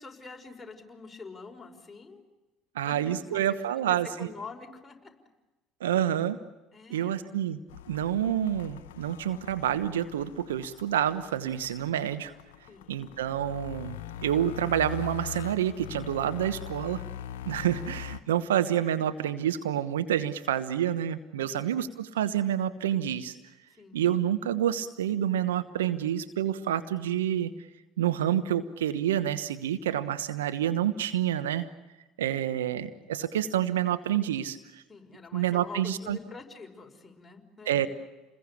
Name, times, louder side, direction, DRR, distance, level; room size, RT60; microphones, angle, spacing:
voice 1, 0.0-2.2 2.8-5.1 6.7-7.2 12.7-13.0 21.4-21.7 23.8-24.0 34.9-37.9, left 4 dB, 15° left, 0 dB, 5.6 m, -46 dB
voice 2, 2.7-4.3 5.8-6.4 6.9-7.6 7.9-12.3 12.9-17.0 17.4-23.3 23.9-27.5 28.0-31.7 32.2-34.8 35.3-36.2 37.6-37.9, right 10 dB, 85° right, 11 dB, 1.1 m, -28 dB
sound 1, 7.7-18.2, left 11 dB, 80° left, 0.9 m, -42 dB
29.0 x 21.5 x 8.5 m, 1.1 s
hypercardioid pair, 65°, 0 cm